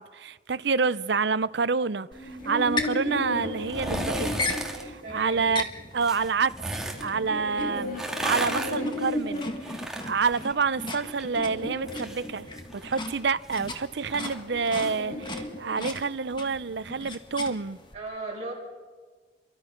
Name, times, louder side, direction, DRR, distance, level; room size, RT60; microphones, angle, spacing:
voice 1, 0.0-6.6 7.0-7.9 8.2-17.8, right 5 dB, 60° right, 0.6 m, -28 dB
sound 1, 2.1-5.5 6.4-9.8 10.4-12.9 13.9-16.3, left 1 dB, 45° left, 7.7 m, -36 dB
sound 2, 2.1-17.9, left 2 dB, 25° left, 1.7 m, -39 dB
sound 3, 3.6-4.8 6.0-7.0 7.8-11.3 11.6-15.0 15.3-15.4, right 1 dB, 5° right, 2.1 m, -35 dB
voice 2, 5.0-5.4 7.3-7.7 17.9-18.5, right 2 dB, 35° right, 7.9 m, -37 dB
28.5 x 23.0 x 5.9 m
head